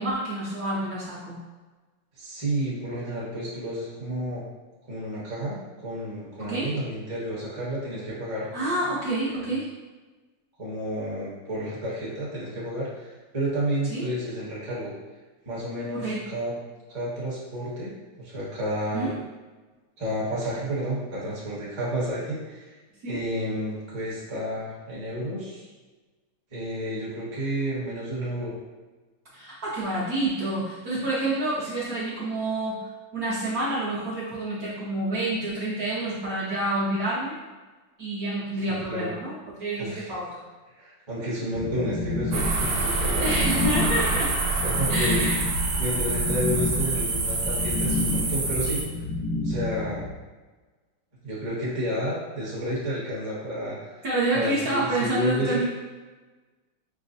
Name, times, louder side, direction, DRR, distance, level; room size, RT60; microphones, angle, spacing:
voice 1, 0.0-1.4 6.4-6.7 8.5-9.7 13.9-14.0 15.9-16.3 18.9-19.1 23.0-23.2 29.3-32.8 33.1-37.4 38.0-40.4 43.2-44.4 44.9-45.4 54.0-55.6, right 1 dB, 60° right, -8 dB, 1.1 m, -28 dB
voice 2, 2.2-4.4 4.9-8.5 9.3-9.5 10.6-13.1 13.3-14.9 15.4-16.5 16.9-17.9 18.2-19.1 20.0-22.7 23.1-25.7 26.5-28.5 38.7-39.1 39.8-40.1 40.8-43.9 44.6-45.2 45.8-48.8 49.4-50.1 51.2-54.0 54.3-55.6, equal, 20° right, -7 dB, 0.7 m, -31 dB
sound 1, 41.5-50.1, left 2 dB, 90° left, 1.5 m, -30 dB
sound 2, 42.3-48.8, right 3 dB, 75° right, 1.3 m, -26 dB
6.1 x 2.2 x 2.6 m, 1.3 s
omnidirectional pair, 2.2 m